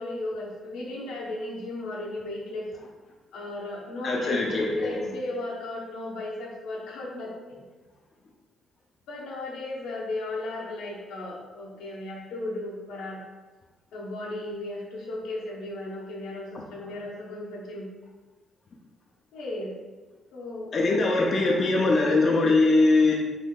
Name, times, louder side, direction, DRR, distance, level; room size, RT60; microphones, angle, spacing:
voice 1, 0.0-2.7 3.3-7.6 9.1-13.2 13.9-17.9 19.3-19.7 20.3-20.7 21.0-21.9, left 2 dB, 90° left, -4 dB, 0.7 m, -35 dB
voice 2, 4.0-5.0 20.7-23.1, left 3 dB, 45° left, -2 dB, 0.4 m, -22 dB
3.4 x 2.6 x 2.3 m, 1.2 s
cardioid pair, 90°, 0 cm